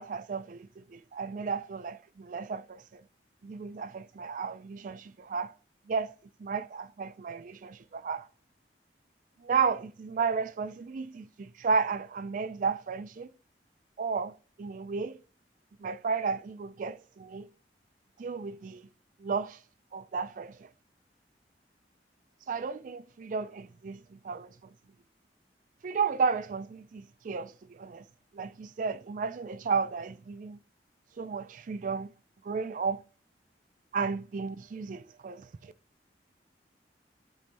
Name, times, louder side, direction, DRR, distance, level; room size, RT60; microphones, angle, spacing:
voice 1, 0.0-3.0 3.4-5.5 5.9-6.1 6.4-8.3 9.4-13.3 14.0-15.2 15.8-17.5 18.2-18.8 19.2-19.6 19.9-20.7 22.5-24.7 25.8-28.0 28.3-30.6 31.2-32.1 32.4-33.0 33.9-35.7, right 5 dB, 50° right, 0.4 m, -33 dB
13.0 x 5.3 x 2.8 m
head